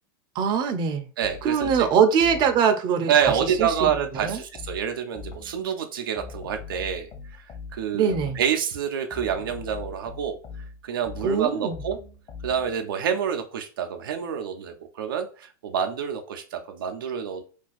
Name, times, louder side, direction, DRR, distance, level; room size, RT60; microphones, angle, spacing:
voice 1, 0.3-1.1 1.4-4.4 7.9-8.4 11.2-11.8, right 7 dB, 45° right, 7 dB, 0.6 m, -23 dB
sound 1, 1.2-2.8 3.2-5.7 6.2-8.6 9.1-12.9, left 5 dB, 35° left, 0.9 m, -41 dB
voice 2, 1.2-1.9 3.1-7.1 7.3-10.4 10.8-12.0 12.4-17.4, right 8 dB, 85° right, 5 dB, 0.5 m, -27 dB
2.6 x 2.3 x 3.9 m, 0.38 s
hypercardioid pair, 110°, 11 cm